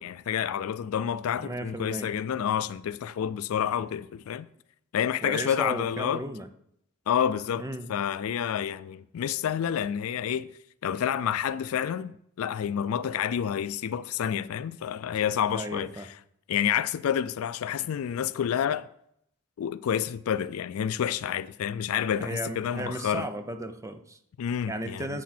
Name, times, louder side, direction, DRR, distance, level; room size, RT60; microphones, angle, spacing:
voice 1, 0.0-4.5 4.9-6.2 7.1-10.5 10.8-16.1 16.5-18.9 19.6-23.3 24.4-25.2, left 9 dB, 75° left, 0.3 m, -29 dB
voice 2, 1.4-2.1 5.2-6.5 7.6-7.9 15.5-16.1 22.2-24.2 24.7-25.2, right 1 dB, 15° right, 0.6 m, -35 dB
9.1 x 6.3 x 4.3 m
head